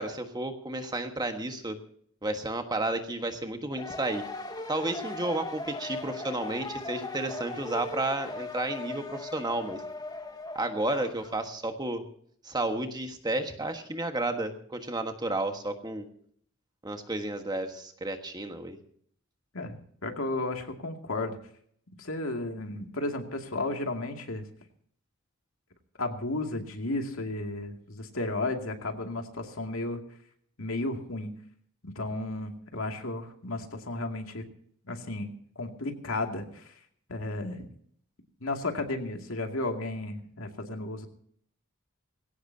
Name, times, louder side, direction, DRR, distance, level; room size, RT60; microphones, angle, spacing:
voice 1, 0.0-1.8 2.2-4.2 4.7-9.8 10.5-12.0 12.4-16.1 16.8-18.8, right 2 dB, 20° right, 6 dB, 1.4 m, -32 dB
sound 1, 3.7-11.4, left 2 dB, 20° left, 1.5 m, -38 dB
voice 2, 19.5-21.4 22.0-24.4 26.0-30.0 30.6-31.3 31.8-34.4 34.8-35.3 35.6-36.7 37.1-37.7 38.4-41.1, left 2 dB, 75° left, 4 dB, 2.4 m, -33 dB
20.5 x 17.0 x 2.8 m, 0.62 s
head